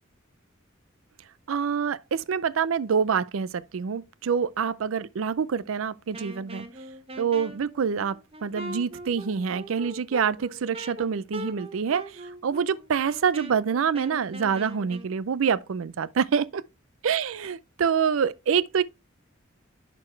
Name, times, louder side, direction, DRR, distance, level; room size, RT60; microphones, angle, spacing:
voice 1, 1.5-6.7 7.2-16.6 17.0-18.8, right 6 dB, 80° right, 0.4 m, -26 dB
Wind instrument woodwind instrument, 6.1-15.1, right 1 dB, 30° right, 0.9 m, -41 dB
10.5 x 4.2 x 3.2 m
head